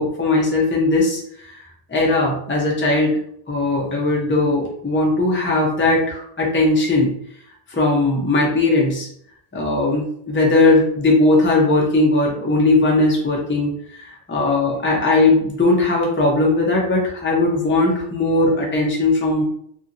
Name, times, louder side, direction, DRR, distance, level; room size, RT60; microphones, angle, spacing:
voice 1, 0.0-1.5 1.9-3.2 3.5-7.1 7.7-9.1 9.5-19.4, left 2 dB, 15° left, -2 dB, 0.5 m, -18 dB
2.7 x 2.6 x 2.5 m, 0.67 s
omnidirectional pair, 1.1 m